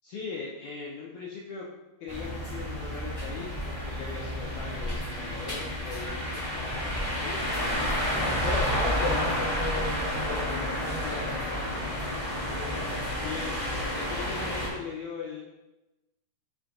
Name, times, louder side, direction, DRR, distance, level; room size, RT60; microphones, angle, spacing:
voice 1, 0.0-1.7 2.0-8.5 9.0-9.4 11.0-11.7 13.1-13.6 13.9-15.4, left 5 dB, 85° left, -4 dB, 1.7 m, -40 dB
sound 1, 2.1-14.7, left 1 dB, 10° left, 1.1 m, -30 dB
voice 2, 8.0-11.4 12.5-12.9, left 1 dB, 50° left, -6 dB, 1.3 m, -35 dB
6.7 x 5.9 x 2.5 m, 1.0 s
omnidirectional pair, 4.3 m